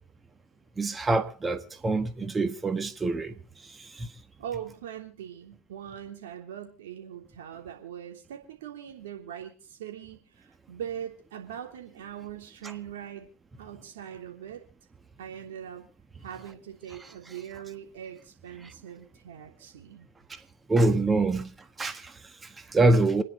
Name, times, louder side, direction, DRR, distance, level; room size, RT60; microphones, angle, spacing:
voice 1, 0.8-4.1 18.6-18.7 20.3-20.4 20.7-21.5 21.8-23.2, right 2 dB, 20° right, 1.5 m, -26 dB
voice 2, 4.4-13.3 13.6-14.6 15.2-15.9 16.2-20.1, right 9 dB, 75° right, 3.2 m, -41 dB
28.0 x 10.5 x 3.9 m
hypercardioid pair, 85°, 0 cm